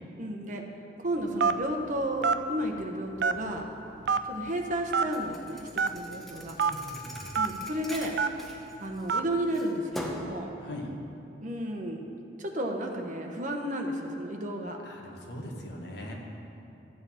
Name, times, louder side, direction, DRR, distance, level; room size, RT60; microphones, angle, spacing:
voice 1, 0.2-0.6 1.0-3.7 4.3-6.5 7.3-8.1 8.8-10.5 11.4-12.1 12.4-14.8, right 1 dB, 45° right, 2 dB, 1.1 m, -32 dB
Telephone, 1.4-1.7 2.2-2.4 3.2-3.6 4.1-4.2 4.9-5.1 5.8-5.9 6.6-6.7 7.4-7.5 8.2-8.4 9.1-9.3, right 5 dB, 65° right, 0.4 m, -25 dB
Thump thud, 5.1-9.2 9.5-10.4, equal, ahead, 1.1 m, -42 dB
voice 2, 6.6-7.4 10.6-10.9 14.8-16.1, left 1 dB, 65° left, 0 dB, 1.6 m, -41 dB
13.5 x 7.7 x 4.4 m, 2.8 s
head